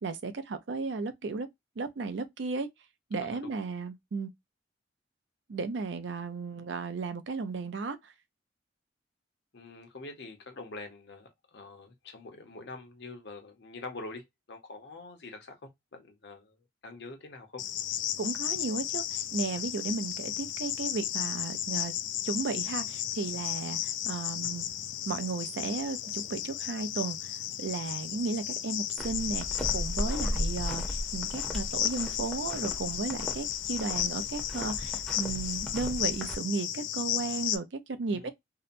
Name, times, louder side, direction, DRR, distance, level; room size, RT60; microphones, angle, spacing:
voice 1, 0.0-1.5 1.8-2.7 3.1-4.3 5.5-8.0 18.2-21.9 22.2-24.7 25.1-29.5 29.7-38.3, right 4 dB, 65° right, 0.5 m, -34 dB
voice 2, 9.5-16.6 16.8-17.6 30.0-30.3 37.9-38.3, left 3 dB, 65° left, 0.8 m, -45 dB
Cricket, 17.6-37.6, left 11 dB, 80° left, 0.3 m, -34 dB
sound 1, 29.0-36.4, equal, 5° left, 0.7 m, -37 dB
2.7 x 2.1 x 2.5 m
head